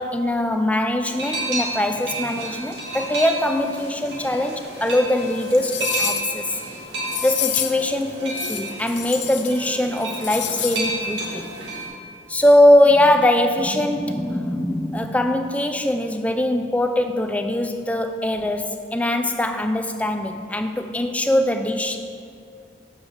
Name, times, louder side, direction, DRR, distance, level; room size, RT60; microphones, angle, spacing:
voice 1, 0.0-6.6 7.2-11.5 12.3-22.0, left 1 dB, 10° left, 7 dB, 0.3 m, -21 dB
sound 1, 1.1-11.9, right 2 dB, 75° right, 2.1 m, -31 dB
sound 2, 4.9-5.0 5.4-6.4 7.1-7.9 8.3-9.7 10.0-10.9 11.2-11.3, left 11 dB, 90° left, 0.6 m, -29 dB
7.1 x 4.8 x 6.3 m, 2.4 s
head